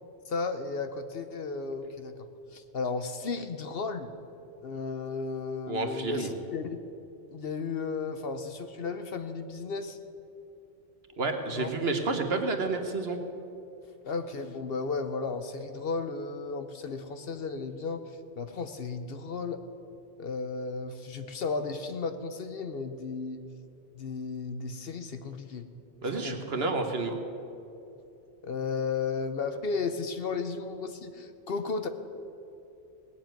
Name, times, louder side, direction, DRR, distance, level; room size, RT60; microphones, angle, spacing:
voice 1, 0.3-4.1 4.6-6.8 7.3-10.0 11.5-11.7 14.0-18.0 18.4-19.6 20.2-23.4 23.9-25.7 26.1-26.4 28.4-31.9, left 4 dB, 55° left, 9 dB, 0.9 m, -34 dB
voice 2, 5.7-6.3 11.2-13.2 26.0-27.2, right 3 dB, 55° right, 5 dB, 1.4 m, -30 dB
18.0 x 7.3 x 9.1 m, 2.8 s
omnidirectional pair, 1.2 m